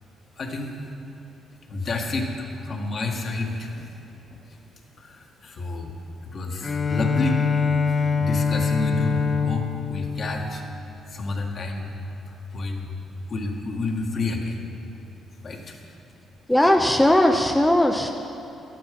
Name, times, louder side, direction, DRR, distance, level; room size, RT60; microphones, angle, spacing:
voice 1, 0.4-0.8 1.7-3.9 4.3-4.6 5.0-5.9 6.3-10.6 11.1-12.0 12.3-12.9 13.3-14.6 15.4-15.8, left 2 dB, 50° left, 1 dB, 1.6 m, -30 dB
Bowed string instrument, 6.6-11.3, left 5 dB, 35° left, 0.9 m, -25 dB
voice 2, 16.5-18.1, left 1 dB, 5° left, 3 dB, 0.7 m, -18 dB
12.0 x 11.0 x 5.2 m, 2.9 s
cardioid pair, 90°, 0 cm